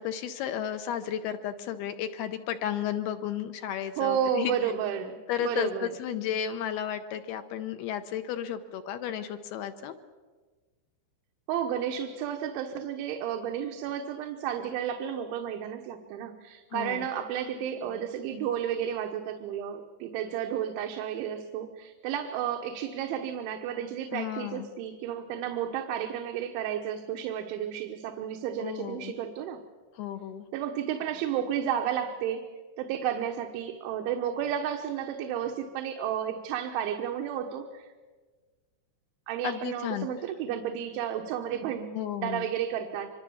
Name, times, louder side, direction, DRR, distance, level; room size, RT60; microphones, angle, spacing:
voice 1, 0.0-4.5 5.3-9.9 16.7-17.1 24.1-24.7 28.6-29.1 30.0-30.5 39.4-40.1 41.9-42.5, left 10 dB, 75° left, 9 dB, 2.5 m, -33 dB
voice 2, 4.0-5.9 11.5-29.6 30.5-32.5 32.8-37.9 39.3-42.0 42.2-43.1, right 9 dB, 85° right, 3 dB, 3.6 m, -32 dB
25.0 x 23.0 x 7.1 m, 1.4 s
omnidirectional pair, 5.3 m